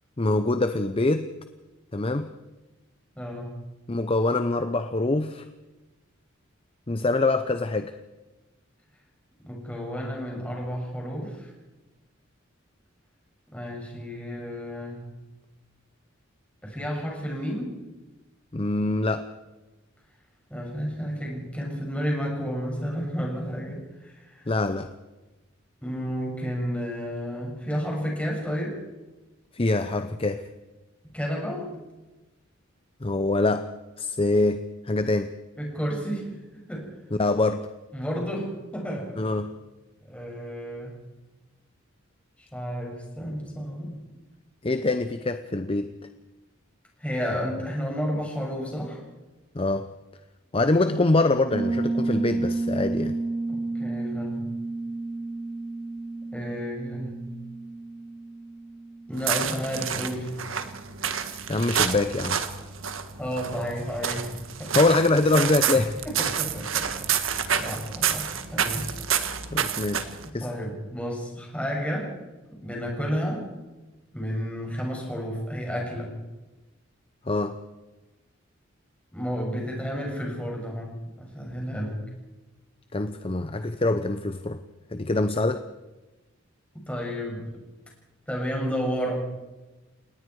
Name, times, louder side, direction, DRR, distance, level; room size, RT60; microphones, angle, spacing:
voice 1, 0.2-1.3 1.9-2.3 3.9-5.4 6.9-7.9 18.5-19.2 24.5-24.9 29.5-30.5 33.0-33.7 34.0-35.3 37.2-37.6 39.2-39.5 44.6-45.9 49.5-49.9 50.5-53.2 61.5-62.4 64.7-65.9 69.5-70.1 70.3-70.5 77.3-77.6 82.9-84.6 84.9-85.6, left 2 dB, 30° left, 10 dB, 0.7 m, -24 dB
voice 2, 3.1-3.6 9.4-11.5 13.5-15.0 16.6-17.7 20.5-24.5 25.8-28.8 31.1-31.6 35.6-36.3 36.7-36.9 37.9-39.4 40.0-40.9 42.4-44.0 47.0-49.0 53.5-54.5 56.3-57.2 59.1-60.3 63.2-64.7 66.0-67.1 67.6-69.0 70.4-72.1 72.6-73.5 74.1-76.1 79.1-80.9 81.2-82.0 86.9-87.4 88.3-89.3, equal, 5° left, -1 dB, 7.0 m, -31 dB
Piano, 51.5-60.0, right 3 dB, 45° right, 6.7 m, -31 dB
sound 1, 59.1-70.3, right 8 dB, 75° right, 1.5 m, -29 dB
29.5 x 18.5 x 4.8 m, 1.1 s
head